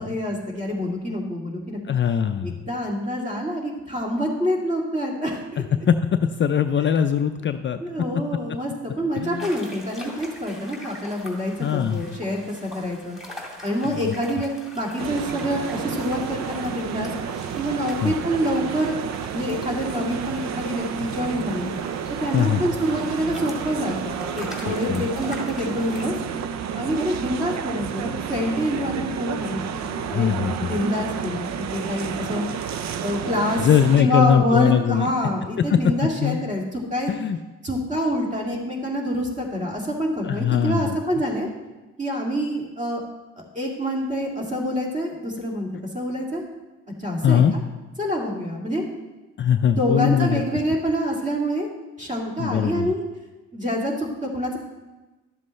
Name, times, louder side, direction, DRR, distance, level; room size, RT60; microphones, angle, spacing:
voice 1, 0.0-1.9 2.4-5.6 7.8-13.2 13.6-17.1 17.6-19.0 19.3-21.7 22.2-26.1 26.7-30.3 30.7-33.7 34.0-37.1 37.6-41.5 42.0-43.0 43.5-45.7 45.9-46.4 47.0-47.4 48.0-48.8 49.4-51.7 52.0-53.0 53.5-54.6, equal, 25° right, -2 dB, 2.4 m, -26 dB
voice 2, 1.9-2.5 5.6-5.9 6.4-7.8 9.2-9.5 11.6-12.0 13.8-14.1 18.0-18.1 22.3-22.6 24.7-25.1 30.1-30.7 33.6-35.1 35.7-35.8 36.2-36.4 37.1-37.4 40.2-40.9 47.2-47.6 49.4-50.4 52.4-52.9, left 8 dB, 40° left, 8 dB, 0.4 m, -21 dB
sound 1, 9.4-26.1, left 1 dB, ahead, 2.4 m, -42 dB
sound 2, 15.0-34.0, right 8 dB, 65° right, 0.6 m, -31 dB
12.0 x 7.5 x 3.2 m, 1.2 s
cardioid pair, 90°, 30 cm